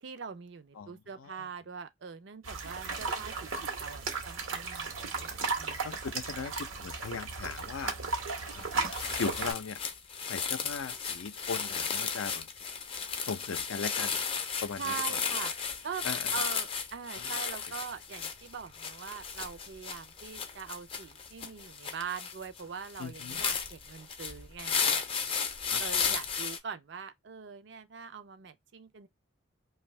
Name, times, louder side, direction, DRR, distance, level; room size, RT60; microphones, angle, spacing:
voice 1, 0.0-6.1 14.8-15.5 15.8-16.0 16.3-25.4 25.8-29.1, right 6 dB, 60° right, 0.4 m, -42 dB
voice 2, 0.8-1.5 5.8-7.9 8.5-9.8 10.3-12.5 13.3-14.2 14.6-14.9 16.0-16.3 17.2-17.3 23.0-23.4 25.7-25.8, left 5 dB, 90° left, 0.5 m, -38 dB
sound 1, 2.4-9.5, right 4 dB, 90° right, 0.9 m, -35 dB
sound 2, 8.5-8.6 8.9-26.6, left 6 dB, 25° left, 0.4 m, -34 dB
2.6 x 2.3 x 3.1 m
head